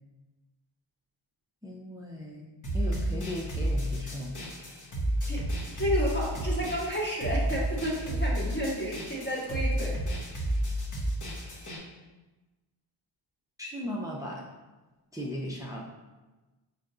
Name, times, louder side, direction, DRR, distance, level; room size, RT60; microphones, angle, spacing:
voice 1, 1.6-2.5 2.7-4.4 13.6-14.4 15.1-15.8, left 1 dB, 5° right, -2 dB, 0.5 m, -37 dB
sound 1, 2.6-11.8, right 1 dB, 40° left, 0.9 m, -31 dB
voice 2, 5.8-10.2, equal, 20° left, -5 dB, 1.2 m, -31 dB
5.1 x 2.3 x 3.7 m, 1.2 s
wide cardioid pair, 90°, 49 cm